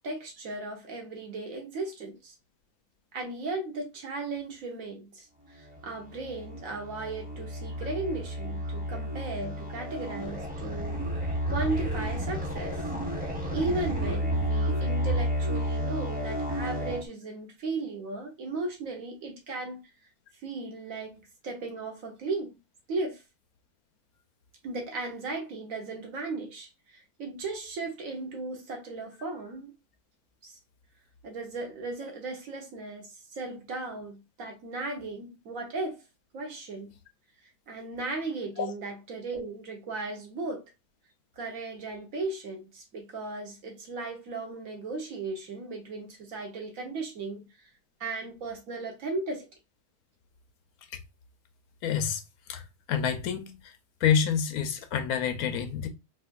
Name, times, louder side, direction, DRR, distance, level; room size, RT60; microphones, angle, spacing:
voice 1, 0.0-2.3 3.1-11.0 11.5-12.8 13.5-19.8 20.4-22.5 22.9-23.2 24.6-29.7 30.4-30.6 31.2-36.0 36.3-36.9 37.7-40.7 41.4-47.7 48.0-49.5, right 3 dB, 65° right, 1.4 m, -36 dB
sound 1, 5.6-17.0, equal, 5° right, 0.8 m, -31 dB
voice 2, 51.8-52.2 52.5-52.6 52.9-53.7 54.0-55.9, left 8 dB, 85° left, 1.1 m, -27 dB
4.2 x 2.5 x 2.4 m
omnidirectional pair, 1.5 m